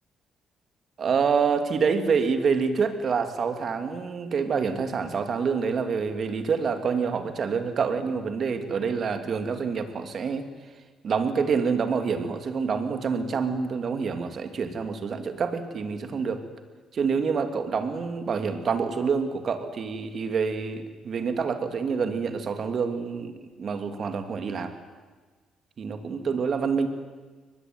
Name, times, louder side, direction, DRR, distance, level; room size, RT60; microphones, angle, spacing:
voice 1, 1.0-10.5 11.0-16.4 16.9-24.7 25.8-26.9, right 5 dB, 55° right, 7 dB, 2.8 m, -27 dB
23.5 x 19.5 x 9.5 m, 1.4 s
cardioid pair, 90°, 0 cm